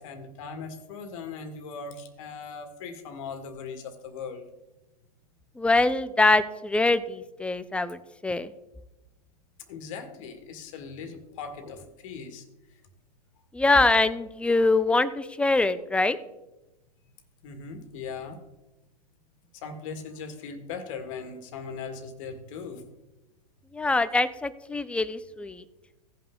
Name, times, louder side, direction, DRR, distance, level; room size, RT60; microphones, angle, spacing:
voice 1, 0.0-4.4 9.7-12.8 17.4-18.4 19.5-22.9 24.1-24.3, left 5 dB, 50° left, 8 dB, 1.8 m, -39 dB
voice 2, 5.6-8.0 8.2-8.5 13.5-16.2 23.7-25.6, left 2 dB, 5° left, 14 dB, 0.4 m, -23 dB
16.5 x 5.6 x 3.7 m, 0.98 s
hypercardioid pair, 115°, 21 cm